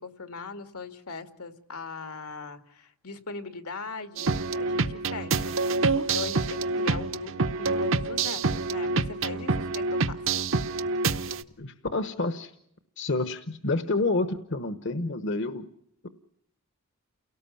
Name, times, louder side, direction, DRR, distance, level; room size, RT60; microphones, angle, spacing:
voice 1, 0.0-5.6 6.1-10.2, left 4 dB, 85° left, 8 dB, 2.2 m, -40 dB
sound 1, 4.2-11.4, right 3 dB, 60° right, 1.0 m, -27 dB
voice 2, 11.6-12.5 13.0-15.7, left 3 dB, 55° left, 10 dB, 1.1 m, -28 dB
29.5 x 18.0 x 7.2 m, 0.76 s
head